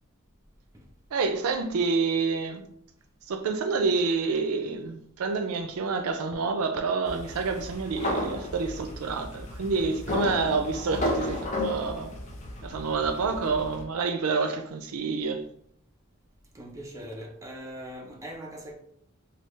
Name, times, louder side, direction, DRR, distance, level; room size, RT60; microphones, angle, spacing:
voice 1, 1.1-2.6 3.3-12.1 12.6-15.4, right 4 dB, 85° right, 0.4 m, -28 dB
sound 1, 7.1-13.8, left 1 dB, 35° left, 0.5 m, -33 dB
voice 2, 16.5-18.7, equal, 15° right, 0.5 m, -41 dB
3.3 x 2.3 x 3.1 m
head